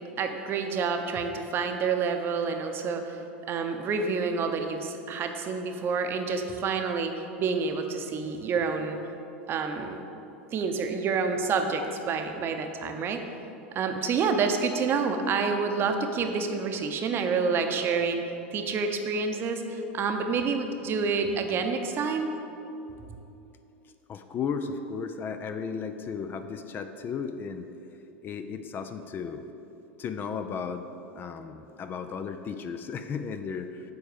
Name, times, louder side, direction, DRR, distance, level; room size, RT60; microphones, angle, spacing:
voice 1, 0.2-3.2 3.5-9.0 9.5-10.0 10.5-13.2 13.7-18.2 18.5-22.3, right 5 dB, 40° right, 5 dB, 0.8 m, -28 dB
voice 2, 24.1-27.7 28.2-29.4 30.0-30.9 31.2-33.8, left 6 dB, 35° left, 8 dB, 0.5 m, -34 dB
7.9 x 4.3 x 6.7 m, 2.9 s
hypercardioid pair, 90°, 6 cm